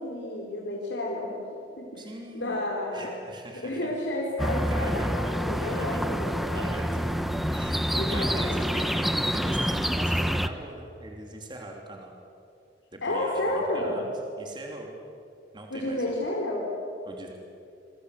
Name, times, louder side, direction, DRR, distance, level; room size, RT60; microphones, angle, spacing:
voice 1, 0.0-1.3 1.8-2.0 2.3-3.2 3.6-6.8 7.9-8.7 13.0-14.0 15.7-16.7, left 1 dB, 90° left, -2 dB, 4.6 m, -31 dB
voice 2, 2.0-2.6 2.9-3.9 4.7-6.0 6.5-7.1 7.4-12.2 12.9-15.0 15.5-16.3 17.0-17.3, right 2 dB, 25° right, 1 dB, 3.0 m, -42 dB
sound 1, 4.4-10.5, equal, ahead, 1.0 m, -27 dB
28.0 x 24.5 x 8.2 m, 2.5 s
head